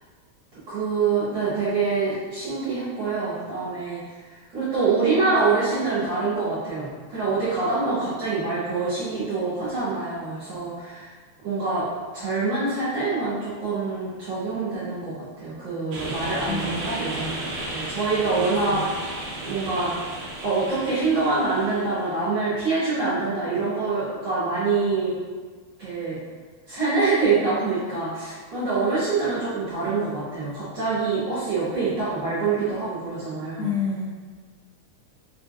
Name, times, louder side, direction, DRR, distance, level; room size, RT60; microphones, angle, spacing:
voice 1, 0.7-11.1 11.4-11.9 12.1-19.0 19.4-20.2 20.4-25.2 25.8-26.2 26.7-33.7, right 4 dB, 55° right, -12 dB, 1.4 m, -25 dB
sound 1, 15.9-22.1, right 1 dB, 85° right, 1.1 m, -34 dB
voice 2, 16.5-16.8 18.3-18.9 33.6-34.1, left 4 dB, 55° left, -12 dB, 1.2 m, -29 dB
4.9 x 3.5 x 2.4 m, 1.5 s
omnidirectional pair, 3.4 m